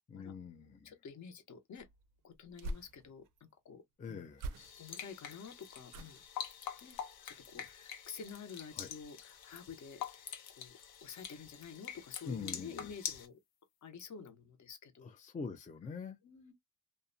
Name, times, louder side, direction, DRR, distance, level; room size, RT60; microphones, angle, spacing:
voice 1, 0.1-0.9 4.0-4.6 8.7-8.9 12.2-12.9 15.0-16.2, left 5 dB, 20° left, 0.4 m, -44 dB
voice 2, 0.8-1.9 2.2-3.8 4.8-6.2 6.8-7.0 7.2-13.4 13.8-15.1 16.2-16.5, left 6 dB, 50° left, 0.8 m, -50 dB
sound 1, 1.8-3.4 4.3-5.1 5.9-6.4 6.9-7.2 7.5-7.6, right 1 dB, 60° right, 0.5 m, -46 dB
sound 2, 4.6-13.3, left 8 dB, 90° left, 0.7 m, -46 dB
2.6 x 2.1 x 2.5 m
cardioid pair, 100°, 36 cm